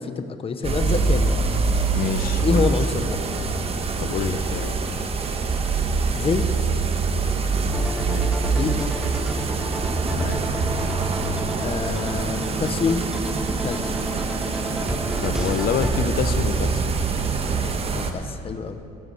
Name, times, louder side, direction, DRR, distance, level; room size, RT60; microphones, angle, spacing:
voice 1, 0.0-1.3 2.4-3.2 6.1-6.5 8.4-8.9 11.6-13.1 13.6-14.0 17.9-18.8, left 5 dB, 35° left, 9 dB, 0.9 m, -26 dB
sound 1, 0.6-18.1, right 4 dB, 35° right, 1.2 m, -24 dB
voice 2, 1.9-2.6 4.0-4.7 8.0-8.3 10.1-10.4 15.2-16.9, left 8 dB, 60° left, 11 dB, 0.7 m, -27 dB
sound 2, 7.7-16.0, right 1 dB, 5° right, 1.1 m, -32 dB
20.0 x 8.1 x 6.3 m, 2.7 s
cardioid pair, 110°, 17 cm